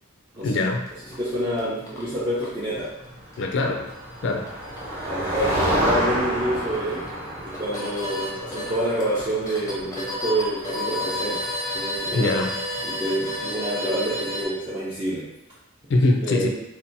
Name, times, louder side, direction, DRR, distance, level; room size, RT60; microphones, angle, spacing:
voice 1, 0.4-0.8 3.4-3.9 4.2-4.5 12.1-12.5 15.9-16.5, left 2 dB, 60° left, 2 dB, 0.3 m, -22 dB
sound 1, 0.9-14.4, equal, 15° left, 0.6 m, -34 dB
voice 2, 1.2-2.9 5.0-5.5 5.8-7.0 7.4-11.4 11.7-12.4 12.8-15.2 16.2-16.5, right 1 dB, 25° right, -10 dB, 0.6 m, -27 dB
Motor vehicle (road), 3.6-11.4, right 1 dB, 10° right, 1.0 m, -29 dB
2.8 x 2.1 x 2.6 m, 0.86 s
head